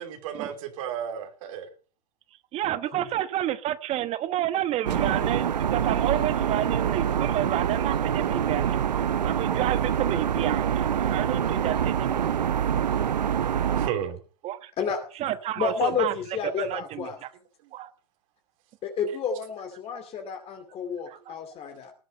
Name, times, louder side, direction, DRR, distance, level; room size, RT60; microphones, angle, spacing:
voice 1, 0.0-1.7 13.7-14.2 17.6-17.7, right 9 dB, 55° right, 4 dB, 3.3 m, -33 dB
voice 2, 2.5-5.5 5.7-8.8 9.2-12.3 14.4-14.7 15.1-16.1 16.4-17.3 17.7-17.9 19.9-20.0 21.1-21.4, right 13 dB, 30° right, 13 dB, 1.1 m, -30 dB
sound 1, 4.8-13.9, right 9 dB, 85° right, 0.7 m, -25 dB
voice 3, 15.6-17.2 18.8-21.9, left 6 dB, 30° left, 6 dB, 2.5 m, -30 dB
19.0 x 8.2 x 5.4 m, 0.39 s
hypercardioid pair, 115°, 21 cm